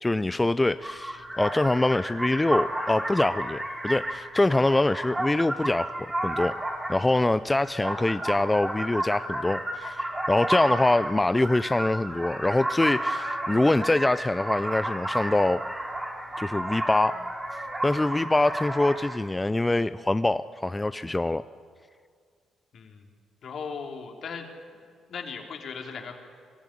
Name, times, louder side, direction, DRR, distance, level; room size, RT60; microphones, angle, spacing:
voice 1, 0.0-6.6 6.9-15.6 16.4-17.2 17.8-21.4, left 2 dB, 15° left, 13 dB, 0.4 m, -24 dB
sound 1, 0.8-19.2, right 1 dB, 15° right, 3.5 m, -32 dB
voice 2, 22.7-23.1 23.4-24.5 25.1-26.1, left 6 dB, 60° left, 3 dB, 3.2 m, -37 dB
22.5 x 13.5 x 10.0 m, 2.1 s
cardioid pair, 90°, 0 cm